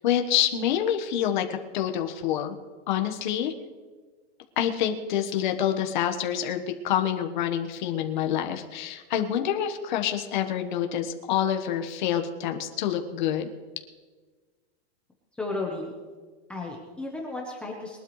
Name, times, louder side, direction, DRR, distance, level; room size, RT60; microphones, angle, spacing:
voice 1, 0.0-2.6 2.9-3.5 4.6-13.5, left 10 dB, 45° left, 5 dB, 1.3 m, -27 dB
voice 2, 15.4-15.9 16.5-18.0, left 2 dB, 5° left, -2 dB, 0.9 m, -33 dB
22.0 x 12.0 x 3.2 m, 1.4 s
supercardioid pair, 170°, 33 cm